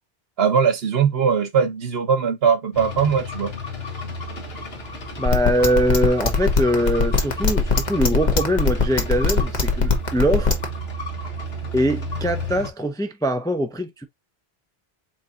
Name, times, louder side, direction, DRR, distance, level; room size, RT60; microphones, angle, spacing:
voice 1, 0.4-3.5, right 6 dB, 75° right, 1.2 m, -20 dB
sound 1, 2.7-12.7, right 1 dB, 80° left, 1.4 m, -32 dB
voice 2, 5.2-10.6 11.7-14.1, equal, 5° left, 0.4 m, -22 dB
sound 2, 5.3-10.6, left 4 dB, 45° left, 1.1 m, -19 dB
4.6 x 3.8 x 2.5 m
omnidirectional pair, 1.0 m